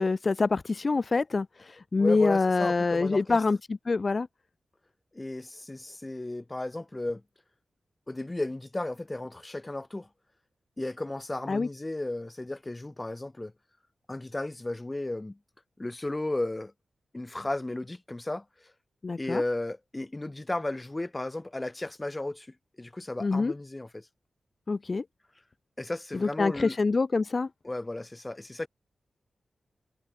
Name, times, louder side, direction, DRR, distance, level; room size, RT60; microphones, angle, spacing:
voice 1, 0.0-4.3 11.5-11.7 19.0-19.4 23.2-23.5 24.7-25.0 26.1-27.5, left 3 dB, 50° left, 2.2 m, -26 dB
voice 2, 2.0-3.4 5.1-7.2 8.1-10.1 10.8-13.5 14.1-15.4 15.8-16.7 17.1-18.4 19.2-22.5 22.8-24.1 25.8-26.8 27.6-28.7, left 2 dB, 25° left, 3.2 m, -34 dB
cardioid pair, 45°, 0 cm